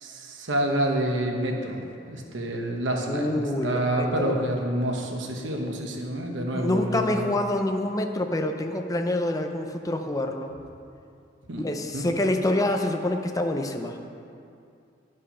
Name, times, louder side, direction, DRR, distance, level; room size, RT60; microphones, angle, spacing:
voice 1, 0.0-7.2 11.5-11.7 11.9-12.1, right 1 dB, 85° right, 1 dB, 1.1 m, -28 dB
voice 2, 3.1-4.3 6.5-10.5 11.6-14.0, left 1 dB, 20° left, 5 dB, 0.6 m, -26 dB
10.5 x 5.3 x 5.6 m, 2.5 s
head